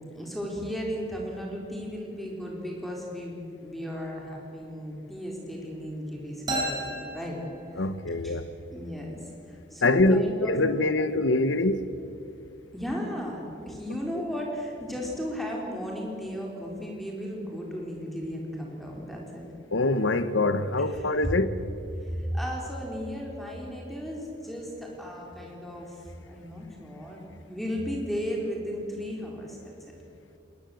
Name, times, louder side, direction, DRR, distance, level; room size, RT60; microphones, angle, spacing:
voice 1, 0.1-7.4 8.2-8.4 8.7-9.2 9.5-10.8 12.7-19.5 21.0-21.1 22.0-26.0 26.3-27.2 27.5-29.7, equal, ahead, 4.2 m, -35 dB
sound 1, 6.5-8.2, right 1 dB, 20° right, 5.0 m, -33 dB
voice 2, 7.8-8.5 9.8-11.9 19.7-21.6, left 2 dB, 90° left, 1.0 m, -24 dB
21.0 x 20.0 x 7.8 m
head